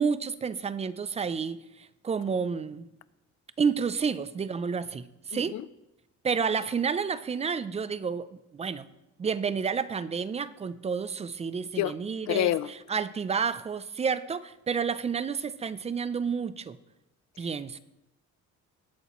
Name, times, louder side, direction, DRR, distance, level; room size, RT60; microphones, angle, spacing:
voice 1, 0.0-2.9 3.6-5.6 6.2-8.9 9.2-16.8 17.4-17.8, right 6 dB, 20° right, 0.4 m, -30 dB
voice 2, 5.3-5.6 11.8-11.9 12.3-12.7, left 13 dB, 65° left, 0.5 m, -27 dB
19.5 x 8.3 x 3.0 m
cardioid pair, 160°, 30 cm